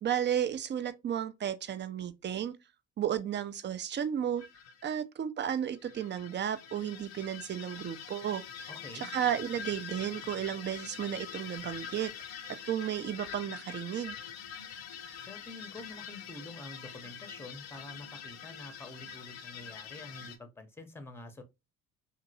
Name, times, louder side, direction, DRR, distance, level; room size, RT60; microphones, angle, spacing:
voice 1, 0.0-2.6 3.0-4.4 4.8-8.4 8.9-12.4 12.6-14.2, right 9 dB, 30° right, 0.4 m, -33 dB
sound 1, 4.4-4.8 5.7-20.4, left 8 dB, 85° left, 0.6 m, -45 dB
voice 2, 8.7-9.1 15.2-21.4, left 2 dB, 5° left, 0.7 m, -47 dB
2.9 x 2.7 x 2.6 m
hypercardioid pair, 50°, 39 cm